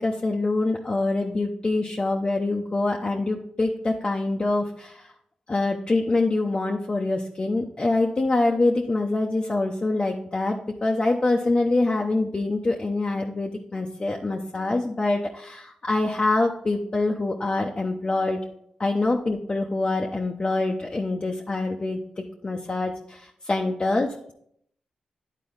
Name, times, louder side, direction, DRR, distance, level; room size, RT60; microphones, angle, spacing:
voice 1, 0.0-5.1 5.5-18.4 18.8-24.3, left 2 dB, 40° left, 0 dB, 0.8 m, -25 dB
9.6 x 4.1 x 4.0 m, 0.69 s
supercardioid pair, 45°, 3 cm